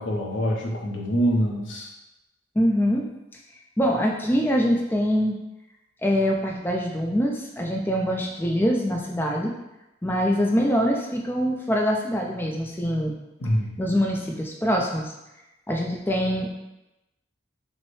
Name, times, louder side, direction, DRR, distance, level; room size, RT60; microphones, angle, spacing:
voice 1, 0.0-1.9 13.4-13.7, equal, 80° left, -1 dB, 0.7 m, -25 dB
voice 2, 2.6-3.1 3.8-5.4 6.0-9.5 10.0-13.1 13.8-15.1 15.7-16.6, equal, 10° left, -1 dB, 0.4 m, -24 dB
5.5 x 2.1 x 3.2 m, 0.95 s
head